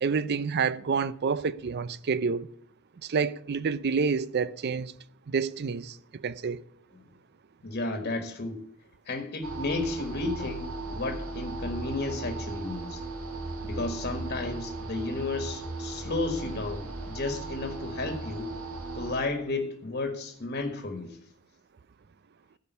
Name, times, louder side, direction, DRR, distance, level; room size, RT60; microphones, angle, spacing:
voice 1, 0.0-2.5 3.0-4.9 5.3-6.0 6.2-6.6, right 5 dB, 50° right, 0.5 m, -28 dB
voice 2, 7.6-8.6 9.0-13.0 13.6-18.5 18.9-21.2, left 2 dB, 45° left, 1.6 m, -33 dB
sound 1, 9.4-19.2, right 2 dB, 80° right, 1.9 m, -37 dB
14.0 x 5.2 x 8.1 m
head